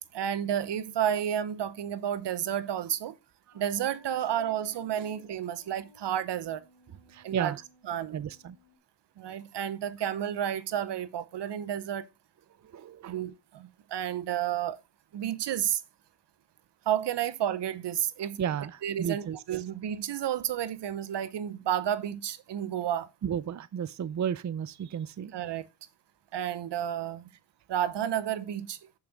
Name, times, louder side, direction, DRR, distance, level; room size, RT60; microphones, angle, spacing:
voice 1, 0.1-3.1 3.5-6.6 7.2-7.5 7.9-8.2 9.2-12.1 13.1-14.8 15.1-15.8 16.9-18.4 18.8-23.1 25.3-25.7 26.3-27.3 27.7-28.8, right 10 dB, 75° right, 0.8 m, -31 dB
sound 1, 3.5-8.8, left 1 dB, 65° left, 1.9 m, -60 dB
voice 2, 7.1-7.6 8.1-8.6 12.6-13.2 18.4-19.4 23.2-25.3, right 8 dB, 40° right, 0.6 m, -33 dB
7.5 x 5.9 x 3.9 m
supercardioid pair, 45°, 42 cm